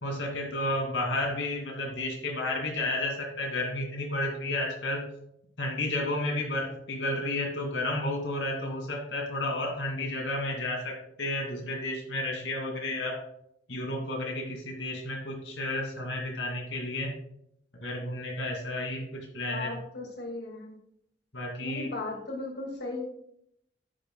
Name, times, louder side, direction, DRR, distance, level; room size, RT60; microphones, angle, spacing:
voice 1, 0.0-5.1 5.6-13.2 13.7-17.2 17.8-19.7 21.3-21.9, left 1 dB, 80° left, 2.5 m, -32 dB
voice 2, 19.5-20.7 21.6-23.0, left 2 dB, 65° left, 2.1 m, -37 dB
10.5 x 9.3 x 2.3 m
head